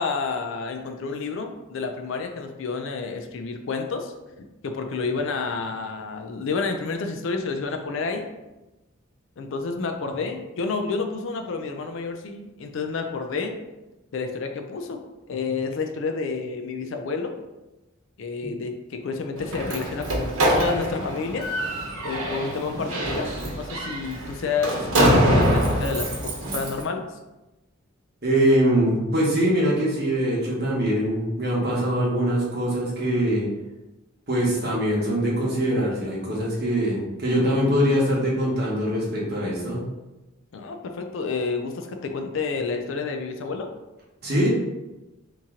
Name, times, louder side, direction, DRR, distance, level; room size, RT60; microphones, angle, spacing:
voice 1, 0.0-4.1 4.6-8.3 9.4-13.6 14.1-15.0 15.3-17.3 18.2-21.5 22.0-27.0 40.5-43.7, left 4 dB, 65° left, 5 dB, 0.4 m, -30 dB
Slam, 19.4-26.8, equal, 80° right, 1.0 m, -24 dB
voice 2, 28.2-33.5 34.3-39.8 44.2-44.5, equal, 50° right, -4 dB, 1.0 m, -23 dB
3.0 x 2.8 x 3.6 m, 1.0 s
head